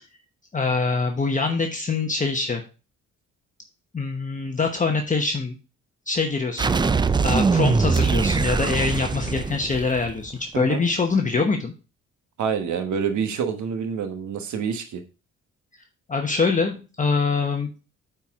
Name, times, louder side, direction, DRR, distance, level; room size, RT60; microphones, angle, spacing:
voice 1, 0.5-2.6 3.9-5.6 6.1-6.7 7.2-11.7 16.1-17.7, left 4 dB, 25° left, 2 dB, 1.1 m, -24 dB
sound 1, 6.6-10.3, right 4 dB, 15° right, 0.4 m, -22 dB
voice 2, 12.4-15.0, right 6 dB, 70° right, 7 dB, 1.3 m, -27 dB
8.8 x 4.5 x 3.6 m, 0.33 s
cardioid pair, 90°, 30 cm